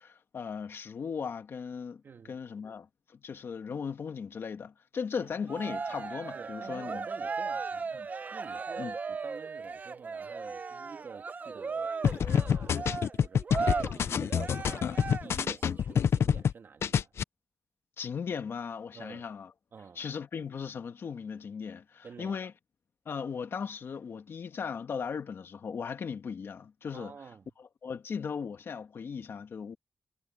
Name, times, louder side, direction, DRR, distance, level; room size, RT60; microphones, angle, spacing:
voice 1, 0.0-2.0 2.3-7.0 7.9-8.1 8.8-8.9 18.0-19.5 19.9-22.5 23.0-27.1 27.8-29.8, left 6 dB, 65° left, 1.7 m, -37 dB
voice 2, 2.0-2.4 5.2-5.3 6.3-7.9 8.3-11.9 12.3-12.9 13.1-17.1 18.9-19.2 19.7-20.0 22.0-22.5 26.9-27.5, right 5 dB, 60° right, 3.1 m, -49 dB
Cheering, 5.5-15.5, right 4 dB, 40° right, 0.7 m, -37 dB
sound 1, 12.0-16.5 16.8-17.2, left 7 dB, 85° left, 0.6 m, -27 dB
wide cardioid pair, 160°, 4 cm